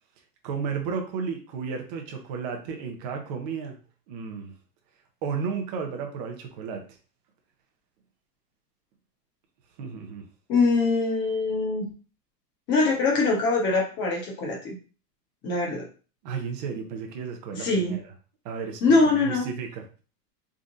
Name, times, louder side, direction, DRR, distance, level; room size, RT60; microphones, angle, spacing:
voice 1, 0.4-3.8 4.1-4.5 5.2-6.8 9.8-10.2 16.2-18.0 18.4-19.8, right 6 dB, 25° right, 3 dB, 0.6 m, -33 dB
voice 2, 10.5-11.8 12.7-14.7 15.4-15.8 17.5-18.0 18.8-19.5, left 3 dB, 25° left, -1 dB, 1.1 m, -23 dB
3.7 x 3.6 x 2.6 m, 0.37 s
supercardioid pair, 160°, 49 cm